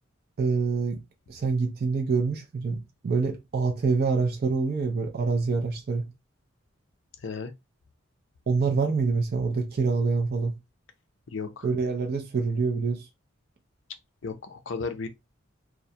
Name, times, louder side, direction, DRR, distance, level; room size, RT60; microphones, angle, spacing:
voice 1, 0.4-1.0 1.3-6.1 8.5-10.6 11.6-13.1, right 4 dB, 50° right, 0.4 m, -26 dB
voice 2, 7.2-7.5 11.3-11.7 14.2-15.1, left 4 dB, 65° left, 0.5 m, -34 dB
2.4 x 2.1 x 2.6 m
head